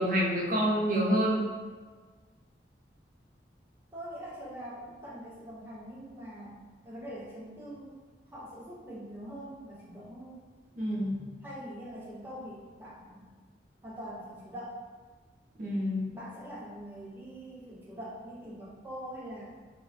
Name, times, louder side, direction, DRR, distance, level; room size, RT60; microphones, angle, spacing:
voice 1, 0.0-1.4 10.8-11.3 15.6-16.1, equal, 50° right, -4 dB, 0.7 m, -27 dB
voice 2, 3.9-8.0 8.3-10.5 11.4-13.3 13.8-14.8 16.1-19.5, equal, 10° right, -8 dB, 0.4 m, -43 dB
2.9 x 2.3 x 3.9 m, 1.4 s
head